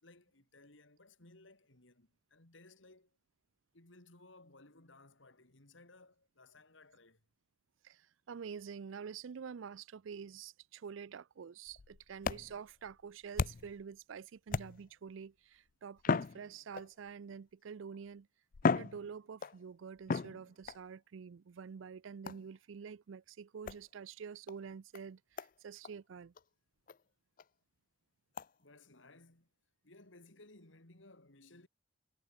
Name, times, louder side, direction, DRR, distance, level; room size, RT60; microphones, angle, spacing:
voice 1, 0.0-3.1 3.7-7.2 28.6-29.5 29.8-31.7, left 2 dB, 75° left, 3.3 m, -60 dB
voice 2, 7.8-18.3 18.6-26.3, right 6 dB, 80° right, 0.4 m, -47 dB
sound 1, 11.7-13.8 14.5-15.1 16.0-17.1 17.9-18.0 18.5-19.6 20.1-20.8 22.2-22.6 23.7-23.8 24.5-24.6 24.9-25.0 25.4-25.5 25.8-25.9 26.4-26.5 26.9-27.0 27.4-27.5 28.4-28.5, left 4 dB, 45° left, 0.4 m, -36 dB
head